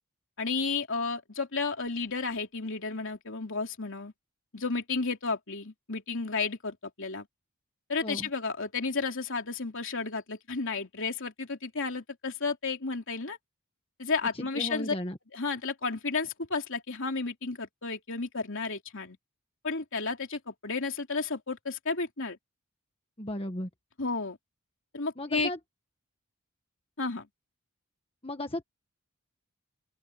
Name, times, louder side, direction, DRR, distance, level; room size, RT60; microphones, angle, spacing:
voice 1, 0.4-4.1 4.5-7.3 7.9-13.4 14.0-14.9 15.3-19.2 19.6-22.4 24.0-24.4 24.9-25.5 27.0-27.3, left 4 dB, 60° left, 3.3 m, -32 dB
voice 2, 14.3-15.2 23.2-23.7 25.2-25.6 28.2-28.6, left 1 dB, 25° left, 1.5 m, -35 dB
open air
head